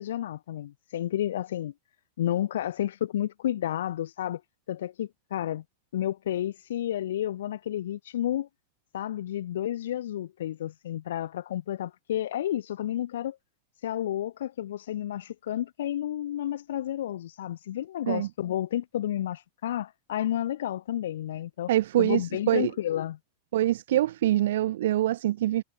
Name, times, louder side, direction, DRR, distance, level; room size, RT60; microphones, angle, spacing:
voice 1, 0.0-1.7 2.2-4.4 4.7-5.6 5.9-8.5 8.9-13.4 13.8-21.7 22.0-23.2, left 12 dB, 85° left, 0.7 m, -31 dB
voice 2, 21.7-22.7 23.5-25.6, right 13 dB, 75° right, 0.7 m, -24 dB
supercardioid pair, 145°, 0 cm